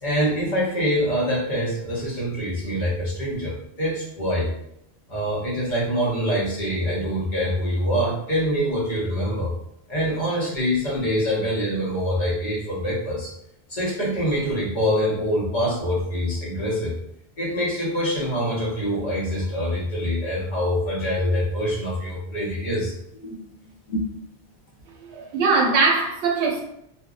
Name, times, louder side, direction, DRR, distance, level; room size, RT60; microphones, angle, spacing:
voice 1, 0.0-4.5 5.1-9.5 9.9-13.3 13.7-17.0 17.4-22.9 23.2-23.4 23.9-24.0, equal, 50° left, -6 dB, 0.9 m, -25 dB
voice 2, 25.0-26.7, right 4 dB, 80° right, 0 dB, 0.8 m, -21 dB
2.5 x 2.1 x 2.3 m, 0.74 s
omnidirectional pair, 1.1 m